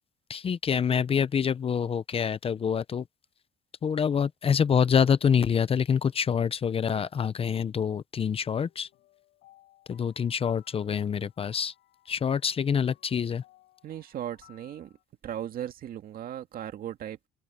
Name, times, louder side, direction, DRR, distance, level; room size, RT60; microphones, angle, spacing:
voice 1, 0.3-3.0 3.8-8.9 9.9-11.7 12.1-13.4, left 7 dB, 35° left, 0.7 m, -26 dB
sound 1, 8.4-15.0, left 15 dB, 75° left, 7.9 m, -61 dB
voice 2, 13.8-14.9 15.2-17.3, right 10 dB, 60° right, 2.1 m, -37 dB
cardioid pair, 110°, 17 cm